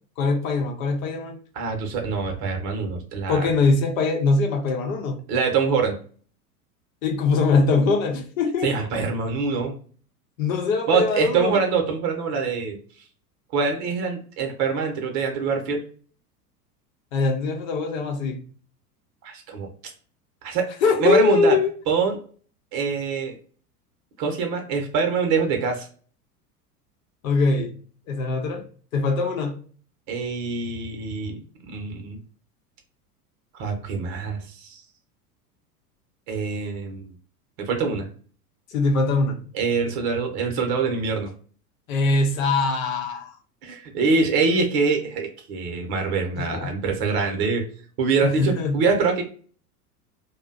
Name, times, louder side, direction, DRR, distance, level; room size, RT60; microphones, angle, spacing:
voice 1, 0.2-1.4 3.3-5.2 7.0-8.7 10.4-11.6 17.1-18.4 20.8-21.7 27.2-27.7 28.1-28.6 28.9-29.6 38.7-39.5 41.9-43.4 46.4-46.7 48.2-48.8, left 3 dB, 60° left, 0.8 m, -22 dB
voice 2, 1.5-3.4 5.3-6.0 8.6-9.7 10.9-12.8 13.5-15.8 19.2-19.9 20.4-20.7 21.0-21.6 21.9-22.2 22.7-23.4 24.2-25.9 30.1-32.2 33.5-34.8 36.3-37.1 37.7-38.1 39.5-41.3 43.6-47.6 48.0-49.2, right 5 dB, 45° right, 0.8 m, -24 dB
2.5 x 2.2 x 2.4 m
figure-of-eight pair, 85°, 46 cm